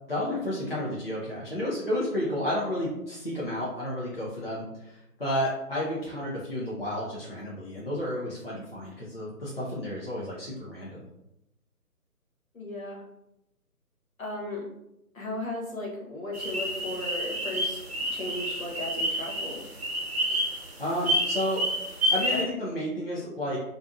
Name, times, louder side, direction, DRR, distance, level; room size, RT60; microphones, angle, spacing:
voice 1, 0.1-11.0 20.3-20.5 20.8-23.6, left 1 dB, 40° left, -7 dB, 0.5 m, -31 dB
voice 2, 12.5-13.0 14.2-14.6 15.1-17.8 18.1-19.7, left 1 dB, 60° left, -3 dB, 1.0 m, -35 dB
sound 1, 16.3-22.4, equal, 40° right, 0.8 m, -29 dB
2.5 x 2.5 x 2.3 m, 0.87 s
figure-of-eight pair, 150°, 47 cm